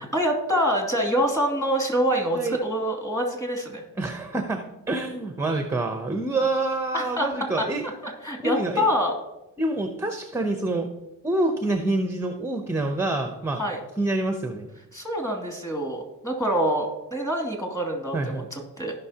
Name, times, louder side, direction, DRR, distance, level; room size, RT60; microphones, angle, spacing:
voice 1, 0.1-3.8 6.9-7.3 7.6-9.1 13.6-13.8 14.9-18.9, equal, 10° left, 1 dB, 2.5 m, -26 dB
voice 2, 4.0-7.8 8.4-8.9 9.6-10.9 11.2-13.6 14.0-14.7 18.1-18.5, right 2 dB, 5° right, 5 dB, 0.8 m, -27 dB
16.0 x 5.7 x 2.9 m, 1.0 s
cardioid pair, 90°, 35 cm